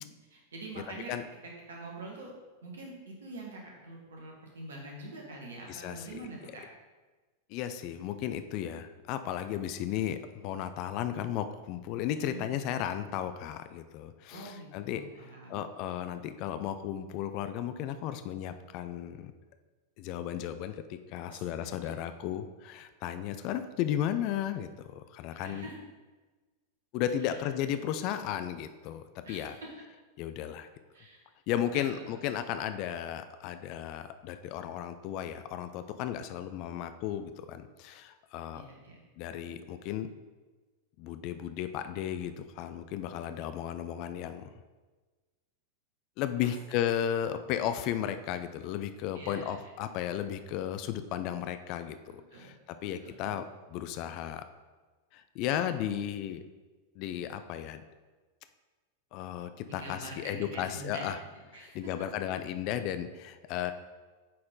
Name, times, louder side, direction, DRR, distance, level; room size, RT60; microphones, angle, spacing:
voice 1, 0.0-1.1 1.4-2.3 2.6-6.6 12.3-12.7 14.3-15.7 21.3-21.9 25.3-25.7 27.2-27.4 29.2-29.7 30.9-31.2 31.7-32.0 38.5-39.0 46.4-46.9 49.1-49.6 52.3-52.5 52.8-53.3 59.7-61.1 61.5-61.8, right 2 dB, 65° right, -1 dB, 1.7 m, -45 dB
voice 2, 0.7-1.2 5.7-6.1 7.5-19.3 20.0-25.7 26.9-29.6 30.2-30.7 31.5-38.6 39.2-40.1 41.0-44.5 46.2-52.0 52.3-52.5 52.8-54.4 55.1-56.4 57.0-57.8 59.1-61.2 61.5-63.7, left 10 dB, 40° left, 10 dB, 0.5 m, -34 dB
8.4 x 4.3 x 3.8 m, 1.3 s
figure-of-eight pair, 90°, 0 cm